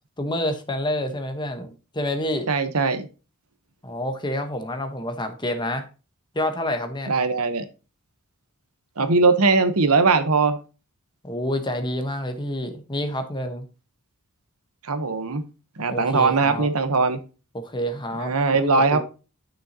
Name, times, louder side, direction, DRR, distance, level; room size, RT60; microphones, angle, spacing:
voice 1, 0.2-2.5 3.8-5.9 6.3-7.1 11.2-13.7 15.9-16.7 17.5-18.3 18.6-19.0, left 1 dB, 20° left, 1.1 m, -28 dB
voice 2, 2.5-3.1 7.1-7.7 9.0-10.6 14.8-15.4 15.8-17.2 18.1-19.0, right 4 dB, 70° right, 1.0 m, -20 dB
11.0 x 6.3 x 2.9 m
head